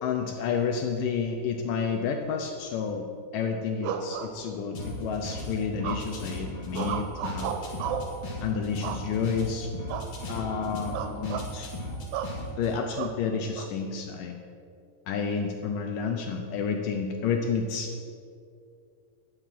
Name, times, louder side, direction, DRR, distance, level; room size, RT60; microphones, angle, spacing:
voice 1, 0.0-3.1 3.3-7.6 8.4-9.7 10.3-11.7 12.6-14.4 15.1-17.9, left 6 dB, 80° left, 4 dB, 1.9 m, -30 dB
sound 1, 3.8-4.9 5.8-6.3 6.7-8.2 8.8-9.4 9.9-10.1 10.4-10.6 10.9-11.5 12.1-12.4 13.0-13.7, right 8 dB, 90° right, 2.8 m, -34 dB
sound 2, 4.7-12.7, equal, 45° left, 1.9 m, -37 dB
11.0 x 6.6 x 7.4 m, 2.4 s
omnidirectional pair, 4.6 m